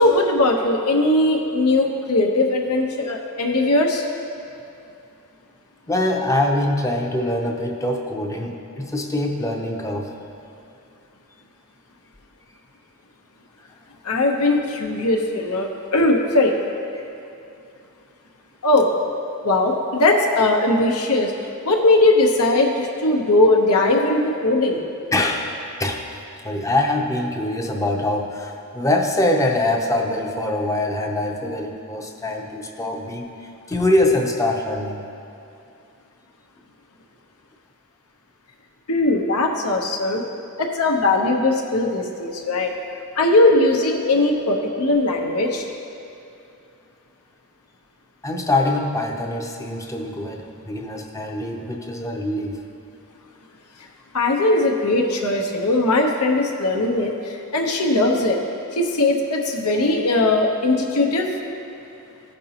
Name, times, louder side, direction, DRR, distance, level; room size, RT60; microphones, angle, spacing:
voice 1, 0.0-4.0 14.0-16.6 18.6-18.9 19.4-21.3 21.6-24.8 38.9-40.2 40.6-42.7 43.2-45.6 54.1-58.4 58.7-61.3, left 2 dB, 80° left, 2 dB, 0.9 m, -19 dB
voice 2, 5.9-10.1 25.1-25.5 25.8-26.0 26.4-35.0 48.2-52.6, left 1 dB, 15° left, 2 dB, 0.6 m, -23 dB
14.5 x 5.3 x 2.9 m, 2.6 s
head